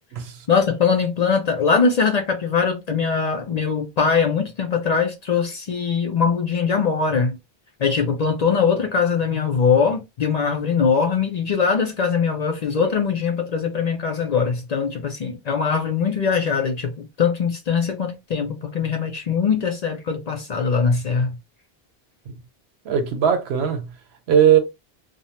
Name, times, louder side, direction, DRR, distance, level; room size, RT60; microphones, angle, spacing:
voice 1, 0.5-7.4 7.8-21.4, left 5 dB, 50° left, 0.5 m, -21 dB
voice 2, 22.9-23.9 24.3-24.6, right 8 dB, 90° right, 0.9 m, -18 dB
2.6 x 2.0 x 2.8 m
omnidirectional pair, 1.1 m